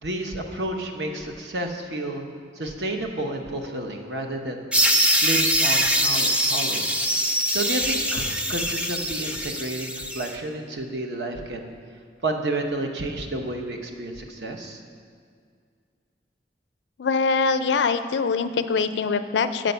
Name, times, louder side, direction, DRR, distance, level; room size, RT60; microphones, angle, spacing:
voice 1, 0.0-2.2 2.5-4.7 5.2-6.9 7.5-11.7 12.2-14.8, right 2 dB, 70° right, 3 dB, 0.9 m, -30 dB
sound 1, 4.7-10.3, equal, 5° right, 0.4 m, -23 dB
voice 2, 17.0-19.7, left 5 dB, 70° left, 10 dB, 0.4 m, -23 dB
7.5 x 5.1 x 6.7 m, 2.2 s
head